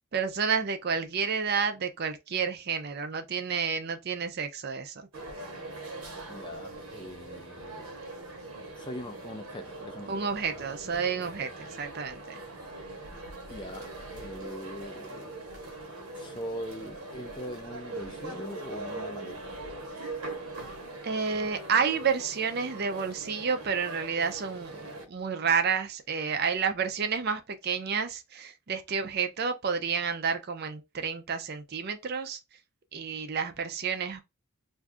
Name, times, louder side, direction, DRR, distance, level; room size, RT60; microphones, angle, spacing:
voice 1, 0.1-4.9 10.1-12.4 21.0-24.7 25.1-32.4 32.9-34.2, right 6 dB, 45° right, 0.4 m, -30 dB
sound 1, 5.1-25.0, right 2 dB, 85° right, 0.9 m, -41 dB
voice 2, 6.3-7.9 8.7-10.2 13.5-13.9 14.2-15.3 16.1-19.6, equal, 20° left, 0.4 m, -41 dB
2.6 x 2.4 x 3.4 m
head